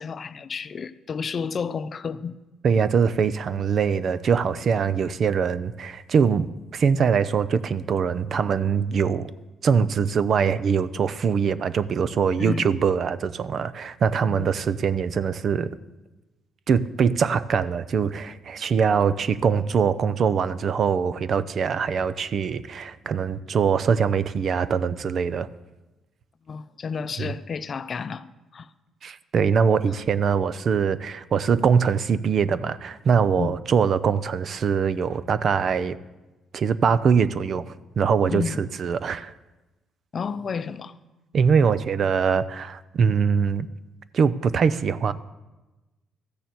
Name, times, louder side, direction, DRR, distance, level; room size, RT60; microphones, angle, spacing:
voice 1, 0.0-2.4 12.4-12.8 14.2-14.5 26.5-28.3 28.5-28.7 33.4-33.5 38.3-38.7 40.1-40.9, left 6 dB, 45° left, 0.6 m, -31 dB
voice 2, 2.6-9.3 9.6-15.7 16.7-25.5 27.2-27.3 29.0-36.0 36.5-39.3 41.3-43.7 44.1-45.1, right 6 dB, 55° right, 0.5 m, -23 dB
13.5 x 6.9 x 7.7 m
cardioid pair, 85°, 0 cm